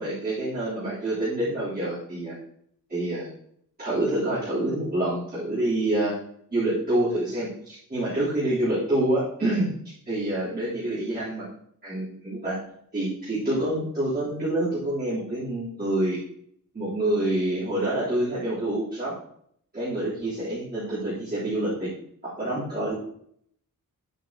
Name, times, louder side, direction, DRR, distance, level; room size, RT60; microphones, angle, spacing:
voice 1, 0.0-2.3 2.9-3.3 3.8-6.2 6.5-9.7 10.0-11.5 11.8-12.6 12.9-16.2 16.7-19.1 19.7-21.9 22.2-22.9, right 1 dB, 25° right, -12 dB, 3.4 m, -27 dB
9.1 x 8.5 x 2.9 m, 0.66 s
wide cardioid pair, 180°, 34 cm